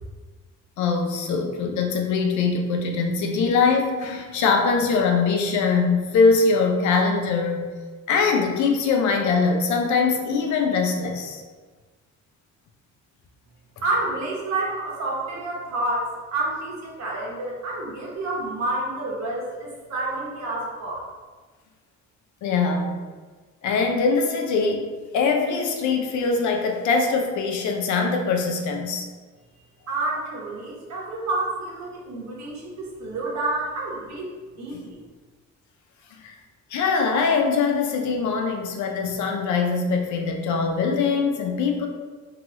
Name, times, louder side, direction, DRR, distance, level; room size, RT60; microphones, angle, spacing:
voice 1, 0.8-7.7 8.1-11.4 22.4-22.9 23.6-29.1 36.1-36.4 36.7-41.9, left 4 dB, 75° left, 3 dB, 0.5 m, -22 dB
voice 2, 13.8-21.1 29.9-35.0, right 2 dB, 65° right, -3 dB, 1.0 m, -29 dB
2.9 x 2.3 x 3.0 m, 1.4 s
cardioid pair, 90°, 30 cm